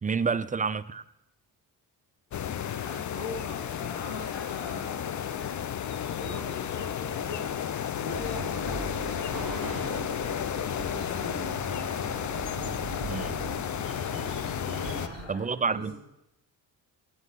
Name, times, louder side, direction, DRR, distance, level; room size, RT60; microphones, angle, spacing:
voice 1, 0.0-1.0 13.0-13.4 15.3-15.9, right 5 dB, 20° right, 14 dB, 0.4 m, -29 dB
sound 1, 2.3-15.1, left 9 dB, 40° left, 0.6 m, -32 dB
voice 2, 2.6-5.8 6.1-10.1 10.6-11.6 13.9-14.4 14.7-16.0, left 3 dB, 70° left, -3 dB, 2.5 m, -42 dB
sound 2, 8.1-15.3, right 6 dB, 45° right, 1.6 m, -41 dB
9.2 x 8.1 x 5.5 m, 0.88 s
supercardioid pair, 60°, 46 cm